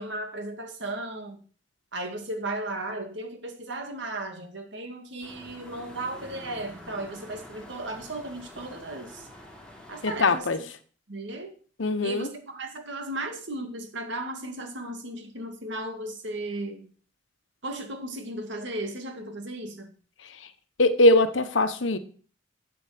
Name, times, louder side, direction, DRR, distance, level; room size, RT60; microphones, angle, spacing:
voice 1, 0.0-1.4 1.9-9.3 9.9-10.5 11.1-11.6 12.0-16.9 17.6-19.9, right 2 dB, 65° right, 5 dB, 2.3 m, -35 dB
sound 1, 5.2-10.4, left 1 dB, 5° left, 3.6 m, -47 dB
voice 2, 10.0-10.6 11.8-12.3 20.2-20.5 20.8-22.0, left 2 dB, 80° left, 11 dB, 1.1 m, -22 dB
12.0 x 8.2 x 5.1 m, 0.43 s
head